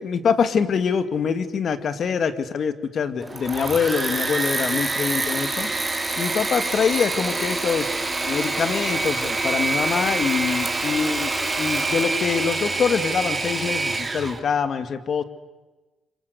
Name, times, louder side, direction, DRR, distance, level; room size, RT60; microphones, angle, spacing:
voice 1, 0.0-5.7 6.2-8.0 8.3-15.2, left 6 dB, 55° left, 11 dB, 2.0 m, -24 dB
Engine / Mechanisms, 3.2-14.4, right 3 dB, 20° right, 3.3 m, -26 dB
26.5 x 24.5 x 8.2 m, 1.2 s
cardioid pair, 90°, 0 cm